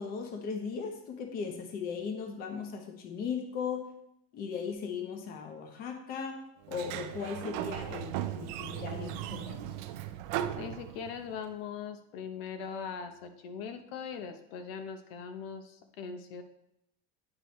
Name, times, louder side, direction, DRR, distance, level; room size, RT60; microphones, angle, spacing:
voice 1, 0.0-3.9 4.3-6.4 6.7-9.7, left 6 dB, 30° left, 4 dB, 0.9 m, -37 dB
Sliding door, 6.6-11.4, right 12 dB, 50° right, 0.4 m, -37 dB
voice 2, 10.6-16.4, left 6 dB, 75° left, 7 dB, 0.8 m, -40 dB
9.8 x 4.6 x 3.1 m, 0.78 s
cardioid pair, 170°, 29 cm